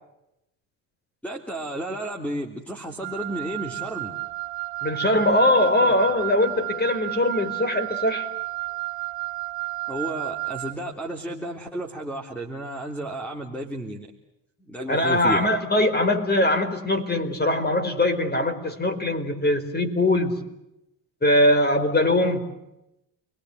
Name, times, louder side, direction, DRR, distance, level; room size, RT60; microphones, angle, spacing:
voice 1, 1.2-4.2 9.9-14.1 14.6-15.4, right 1 dB, 5° left, 2 dB, 3.4 m, -32 dB
Wind instrument woodwind instrument, 3.0-10.8, right 24 dB, 60° right, 1.4 m, -32 dB
voice 2, 4.8-8.3 14.9-20.4 21.2-22.4, left 1 dB, 20° left, 7 dB, 4.7 m, -21 dB
29.5 x 21.5 x 8.0 m, 0.86 s
supercardioid pair, 85°, 49 cm